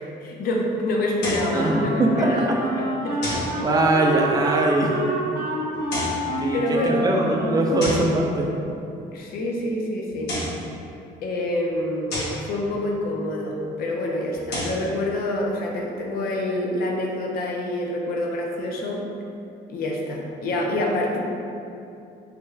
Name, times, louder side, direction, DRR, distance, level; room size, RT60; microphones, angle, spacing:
voice 1, 0.0-2.5 2.8-3.2 5.7-5.8 6.5-7.1 9.1-10.3 11.2-19.0 19.7-21.2, left 1 dB, 60° left, -1 dB, 0.5 m, -27 dB
sound 1, 1.2-1.6 3.2-3.6 5.7-6.3 7.8-8.2 10.1-10.6 12.1-12.4 14.3-14.8, left 1 dB, 80° left, 0.9 m, -30 dB
Wind instrument woodwind instrument, 1.2-8.6, equal, 85° right, 0.7 m, -28 dB
voice 2, 1.5-2.6 3.6-5.0 6.4-8.5, right 2 dB, 20° right, 0 dB, 0.4 m, -22 dB
3.3 x 2.3 x 3.1 m, 2.7 s
cardioid pair, 110°, 17 cm